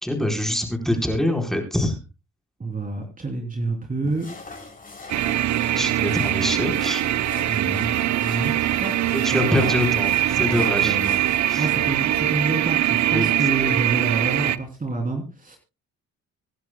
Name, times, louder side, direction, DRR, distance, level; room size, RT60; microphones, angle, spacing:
voice 1, 0.0-2.0 5.7-7.0 9.2-11.0 11.5-11.7 13.1-13.3, left 1 dB, ahead, 3 dB, 4.3 m, -24 dB
voice 2, 2.6-4.3 7.5-8.9 9.3-9.8 10.4-11.2 11.6-15.6, right 3 dB, 25° right, 3 dB, 3.3 m, -28 dB
sound 1, 4.0-11.7, left 3 dB, 30° left, 5.7 m, -41 dB
sound 2, 5.1-14.6, right 13 dB, 65° right, 0.8 m, -22 dB
25.0 x 10.5 x 2.3 m, 0.27 s
cardioid pair, 90°, 30 cm